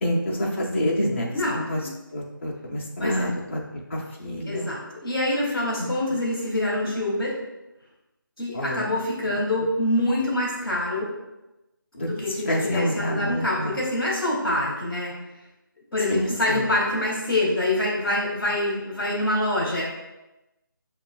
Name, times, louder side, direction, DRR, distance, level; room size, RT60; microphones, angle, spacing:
voice 1, 0.0-1.8 2.1-4.7 5.8-5.9 8.5-8.9 9.2-9.7 11.9-13.8 16.1-16.7, equal, 35° left, -3 dB, 0.6 m, -28 dB
voice 2, 1.3-1.9 3.0-3.1 4.5-7.3 8.4-11.1 12.2-15.1 15.9-19.8, left 1 dB, ahead, -21 dB, 0.3 m, -25 dB
6.6 x 2.3 x 2.3 m, 0.98 s
figure-of-eight pair, 160°, 12 cm